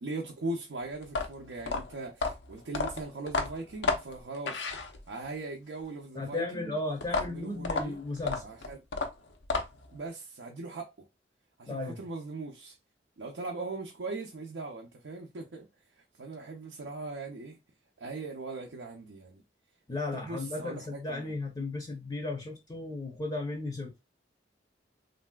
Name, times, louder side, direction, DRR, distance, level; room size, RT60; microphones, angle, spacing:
voice 1, 0.0-4.7 5.1-6.8 7.1-8.0 8.4-8.8 9.9-11.1 11.6-12.8 13.2-15.7 16.2-17.6 18.0-19.4 20.1-21.3, right 3 dB, 85° right, 0.5 m, -40 dB
sound 1, 1.0-5.3 7.0-10.0, left 3 dB, 80° left, 0.6 m, -32 dB
voice 2, 6.1-8.4 11.6-12.0 19.9-23.9, left 2 dB, 20° left, 0.6 m, -35 dB
3.3 x 2.6 x 2.2 m
head